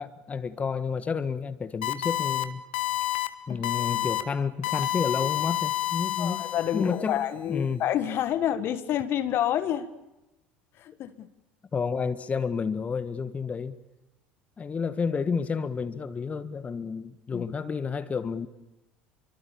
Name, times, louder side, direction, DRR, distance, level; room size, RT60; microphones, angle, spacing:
voice 1, 0.0-2.6 3.5-6.4 6.7-7.8 11.7-13.7 14.6-18.5, left 5 dB, 25° left, 1.6 m, -30 dB
sound 1, 1.8-2.4 2.7-3.3 3.6-4.2 4.6-7.0, left 15 dB, 70° left, 1.4 m, -29 dB
voice 2, 6.2-9.9 10.8-11.3 17.3-17.4, left 11 dB, 50° left, 1.6 m, -28 dB
28.0 x 24.5 x 7.1 m
hypercardioid pair, 70°, 5 cm